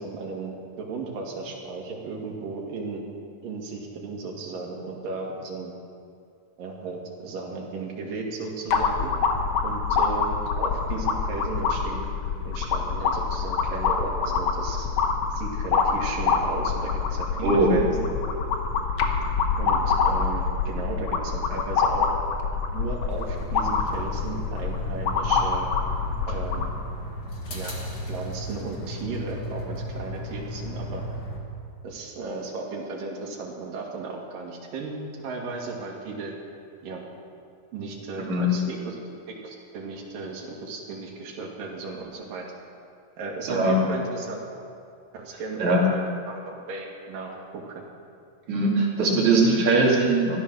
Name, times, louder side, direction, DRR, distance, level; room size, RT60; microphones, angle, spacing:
voice 1, 0.0-3.0 3.4-5.7 6.6-9.1 9.6-12.1 12.5-14.9 15.3-18.1 19.6-22.1 22.7-25.7 26.3-26.7 27.5-27.8 28.1-31.0 31.8-36.4 36.8-37.0 37.7-39.0 39.3-42.5 43.2-44.4 45.1-47.8, right 3 dB, 80° right, -1 dB, 3.7 m, -35 dB
sound 1, 8.7-26.7, left 5 dB, 60° left, 1.6 m, -26 dB
voice 2, 17.4-17.7 38.3-38.5 43.5-43.8 45.6-45.9 48.5-50.4, right 2 dB, 60° right, -3 dB, 3.6 m, -20 dB
sound 2, 23.1-31.4, equal, 35° left, 1.8 m, -35 dB
15.5 x 12.0 x 6.3 m, 2.4 s
omnidirectional pair, 3.9 m